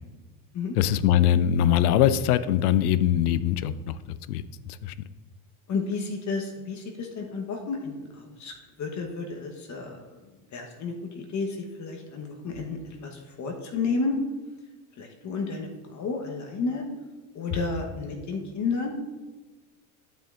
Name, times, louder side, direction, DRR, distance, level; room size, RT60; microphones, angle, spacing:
voice 1, 0.7-4.0 4.3-4.4 4.8-4.9, left 10 dB, 80° left, 15 dB, 0.5 m, -22 dB
voice 2, 5.7-8.5 8.8-14.2 15.0-16.9 17.3-19.0, left 4 dB, 40° left, 2 dB, 1.1 m, -32 dB
9.1 x 7.4 x 2.5 m, 1.3 s
supercardioid pair, 95°, 44 cm